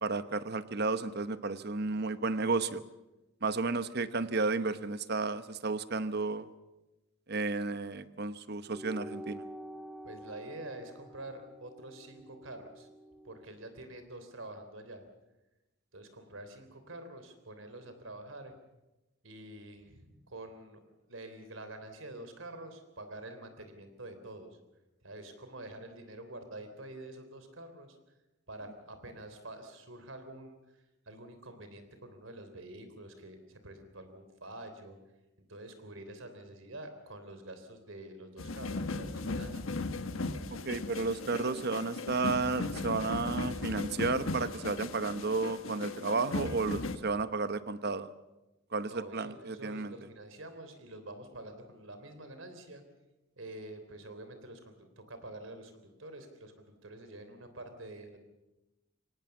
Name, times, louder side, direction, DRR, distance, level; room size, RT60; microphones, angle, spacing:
voice 1, 0.0-2.8 3.4-6.5 7.3-9.4 40.5-48.1 48.7-49.9, right 3 dB, 55° right, 13 dB, 1.0 m, -32 dB
sound 1, 8.7-13.5, equal, ahead, 0.7 m, -48 dB
voice 2, 10.0-12.9 13.2-15.0 15.9-18.6 19.2-20.8 21.1-24.6 25.0-28.0 28.5-35.0 35.5-39.8 48.8-52.8 53.4-58.2, right 1 dB, 75° right, 8 dB, 3.5 m, -47 dB
sound 2, 38.4-47.0, left 3 dB, 85° left, 1.3 m, -37 dB
24.0 x 18.5 x 7.1 m, 1.0 s
head